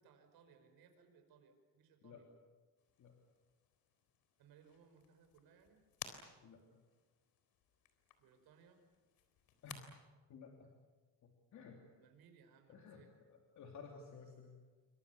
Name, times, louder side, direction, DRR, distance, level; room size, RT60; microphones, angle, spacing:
voice 1, 0.0-2.3 4.4-5.8 8.2-8.8 11.9-13.1, right 6 dB, 90° right, 5 dB, 5.6 m, -66 dB
sound 1, 2.8-9.8, left 9 dB, 80° left, 3.8 m, -57 dB
voice 2, 6.4-6.8 9.6-9.8 10.3-10.7 11.2-11.8 12.7-13.0 13.3-14.6, left 5 dB, 55° left, 2 dB, 3.2 m, -55 dB
28.5 x 25.0 x 7.2 m, 1.4 s
cardioid pair, 160°, 35 cm